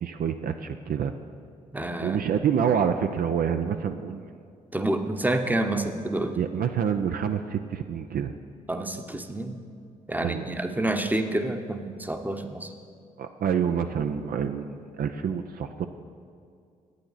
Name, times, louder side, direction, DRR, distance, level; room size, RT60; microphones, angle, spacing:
voice 1, 0.0-1.1 2.0-4.3 6.3-8.3 10.2-10.5 13.2-15.9, right 7 dB, 55° right, 7 dB, 0.5 m, -27 dB
voice 2, 1.7-2.2 4.7-6.4 8.7-9.6 10.1-12.7, right 1 dB, 10° right, 6 dB, 0.9 m, -28 dB
10.5 x 8.8 x 4.0 m, 2.3 s
hypercardioid pair, 45°, 18 cm